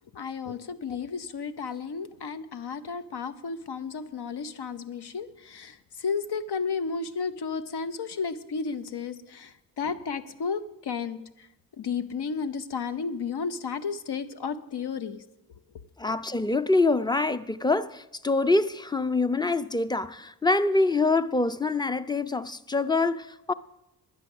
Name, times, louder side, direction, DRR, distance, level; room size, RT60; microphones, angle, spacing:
voice 1, 0.1-11.5 11.8-15.2, left 5 dB, 80° left, 0.8 m, -33 dB
voice 2, 16.0-23.5, left 3 dB, 10° left, 0.4 m, -25 dB
10.5 x 9.9 x 7.7 m
wide cardioid pair, 85°, 40 cm